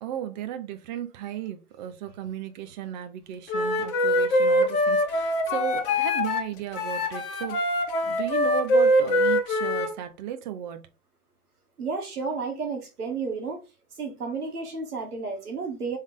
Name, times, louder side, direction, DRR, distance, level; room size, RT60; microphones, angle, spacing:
voice 1, 0.0-7.6 8.0-10.9, right 10 dB, 30° right, 0.7 m, -35 dB
Wind instrument woodwind instrument, 3.5-6.4 6.7-9.9, left 1 dB, 35° left, 1.1 m, -23 dB
voice 2, 11.8-13.6 14.0-16.0, right 4 dB, 75° right, 1.8 m, -32 dB
3.7 x 3.6 x 3.5 m
figure-of-eight pair, 120°, 46 cm